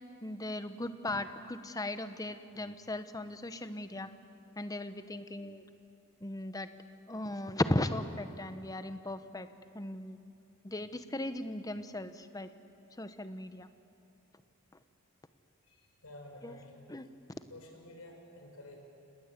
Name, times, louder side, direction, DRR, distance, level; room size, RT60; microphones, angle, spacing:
voice 1, 0.2-4.1 4.6-5.6 6.2-6.7 7.1-9.5 9.7-10.2 10.6-12.5 13.0-13.7 16.4-16.5 16.9-17.1, left 1 dB, 15° left, 10 dB, 0.9 m, -37 dB
voice 2, 15.7-16.9 17.5-18.8, left 1 dB, 85° left, 2 dB, 5.4 m, -51 dB
29.5 x 19.0 x 8.4 m, 2.7 s
head